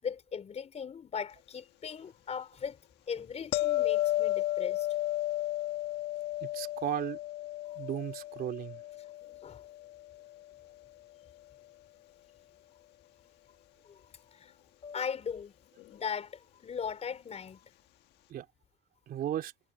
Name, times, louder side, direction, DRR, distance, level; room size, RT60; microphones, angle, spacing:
voice 1, 0.0-2.8 3.1-4.9 7.7-7.8 9.4-9.7 13.8-14.0 14.3-14.5 14.8-15.5 15.9-17.6, left 7 dB, 40° left, 4.5 m, -38 dB
sound 1, 3.5-10.5 15.8-15.9, left 15 dB, 85° left, 1.5 m, -33 dB
voice 2, 6.4-7.2 7.7-8.8 18.3-18.4 19.1-19.5, right 11 dB, 65° right, 3.4 m, -35 dB
cardioid pair, 110°, 17 cm